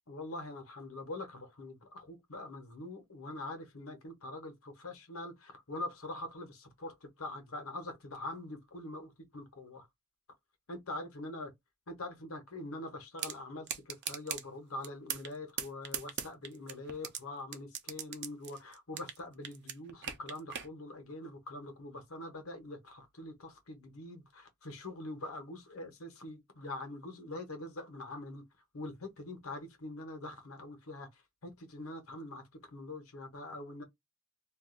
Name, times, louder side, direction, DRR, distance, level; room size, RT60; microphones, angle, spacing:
voice 1, 0.1-9.9 10.7-11.5 11.9-28.4 28.7-32.4 32.7-33.8, left 2 dB, 75° left, 1.1 m, -44 dB
sound 1, 13.2-13.3 13.7-14.4 14.8-15.3 15.6-17.2 17.5-19.2 19.4-20.7, right 9 dB, 50° right, 0.6 m, -38 dB
2.6 x 2.4 x 3.7 m
head